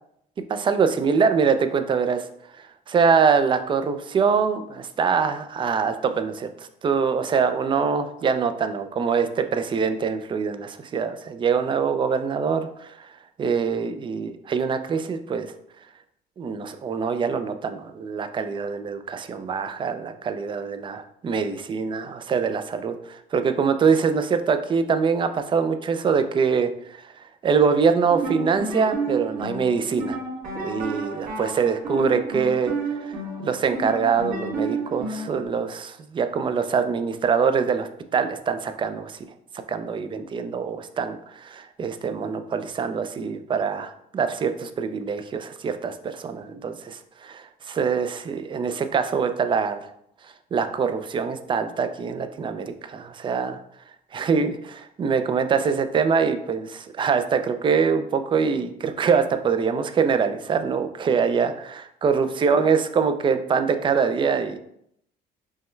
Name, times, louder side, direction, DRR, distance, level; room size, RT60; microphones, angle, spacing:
voice 1, 0.5-2.3 2.6-13.1 13.4-15.5 16.4-26.7 27.0-30.2 30.6-32.7 33.0-39.2 39.7-49.9 50.5-53.6 54.1-64.6, right 6 dB, 30° right, 9 dB, 0.4 m, -24 dB
sound 1, 28.1-35.5, right 3 dB, 50° right, 1.5 m, -31 dB
5.3 x 2.2 x 3.1 m, 0.73 s
cardioid pair, 110°, 17 cm